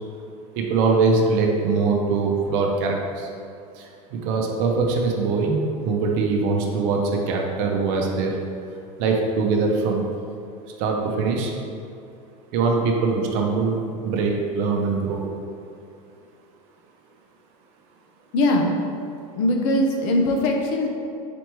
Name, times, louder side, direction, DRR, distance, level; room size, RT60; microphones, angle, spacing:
voice 1, 0.6-3.3 3.8-8.3 9.0-10.0 10.8-11.5 12.5-15.2, right 4 dB, 60° right, 1 dB, 0.7 m, -22 dB
voice 2, 18.3-18.7 19.4-20.9, left 1 dB, 65° left, 1 dB, 0.7 m, -20 dB
4.2 x 3.2 x 3.0 m, 2.5 s
supercardioid pair, 120°, 18 cm